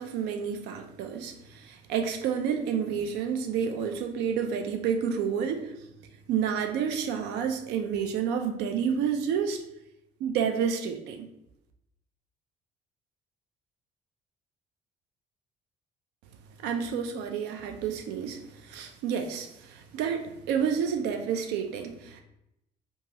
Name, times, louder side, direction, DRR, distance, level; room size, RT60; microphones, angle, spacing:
voice 1, 0.0-5.7 6.3-9.6 10.2-11.3 16.6-22.2, right 7 dB, 85° right, 5 dB, 0.4 m, -30 dB
2.9 x 2.3 x 2.7 m, 0.83 s
cardioid pair, 110°, 17 cm